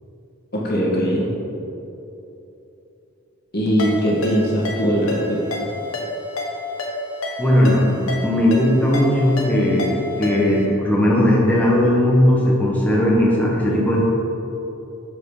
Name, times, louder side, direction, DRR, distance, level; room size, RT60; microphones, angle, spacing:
voice 1, 0.5-1.3 3.5-5.7, equal, 50° left, -4 dB, 1.8 m, -21 dB
Ringtone, 3.8-10.7, left 1 dB, 85° left, 1.3 m, -30 dB
voice 2, 7.4-9.9 10.2-14.1, left 1 dB, 10° left, -5 dB, 1.3 m, -17 dB
7.5 x 5.9 x 5.0 m, 3.0 s
head